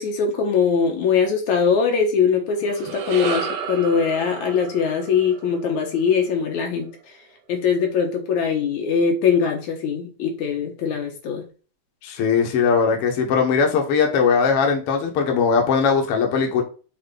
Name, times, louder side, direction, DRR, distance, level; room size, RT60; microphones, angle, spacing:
voice 1, 0.0-6.9 7.5-11.4, left 6 dB, 75° left, 2 dB, 2.9 m, -21 dB
sound 1, 2.5-7.0, right 6 dB, 70° right, 2.3 m, -33 dB
voice 2, 12.0-16.6, left 5 dB, 55° left, 2 dB, 2.1 m, -19 dB
6.6 x 4.2 x 4.0 m, 0.34 s
omnidirectional pair, 3.4 m